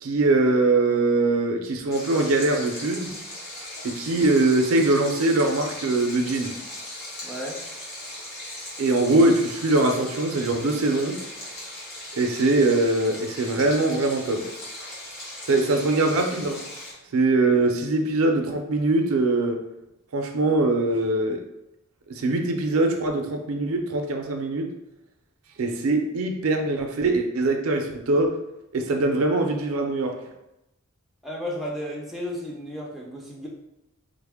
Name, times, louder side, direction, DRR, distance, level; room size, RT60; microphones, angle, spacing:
voice 1, 0.0-3.1 3.8-6.5 8.8-11.2 12.1-14.5 15.4-16.6 17.1-19.6 20.1-21.4 22.1-24.7 25.6-28.3 28.7-30.3, right 2 dB, 75° right, 4 dB, 0.4 m, -22 dB
Stream, 1.9-16.9, left 1 dB, 50° left, 1.1 m, -38 dB
voice 2, 7.2-7.6 31.2-33.5, equal, ahead, -3 dB, 0.4 m, -33 dB
3.4 x 2.1 x 3.4 m, 0.88 s
head